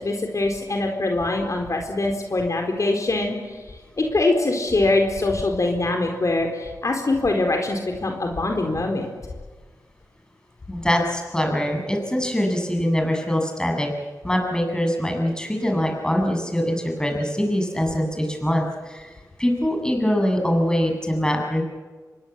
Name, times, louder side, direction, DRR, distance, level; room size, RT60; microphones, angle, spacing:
voice 1, 0.0-3.6 4.0-9.1, left 2 dB, 50° left, 3 dB, 4.4 m, -23 dB
voice 2, 10.7-13.9 14.2-19.1 19.4-21.6, equal, 10° left, 2 dB, 7.5 m, -23 dB
27.0 x 23.5 x 8.3 m, 1.4 s
cardioid pair, 60°, 7 cm